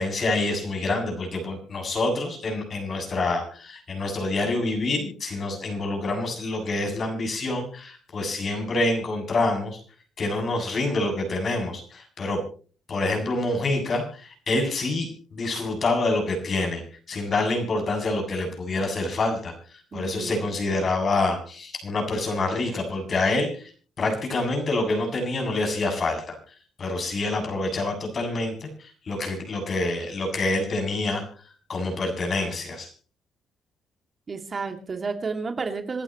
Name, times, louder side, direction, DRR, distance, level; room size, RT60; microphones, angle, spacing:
voice 1, 0.0-9.8 10.2-12.4 12.9-16.8 17.1-23.7 24.0-32.9, left 2 dB, 45° left, 3 dB, 7.4 m, -27 dB
voice 2, 19.9-20.8 34.3-36.0, right 4 dB, 35° right, 6 dB, 2.4 m, -32 dB
27.0 x 12.0 x 3.1 m, 0.40 s
cardioid pair, 90°, 0 cm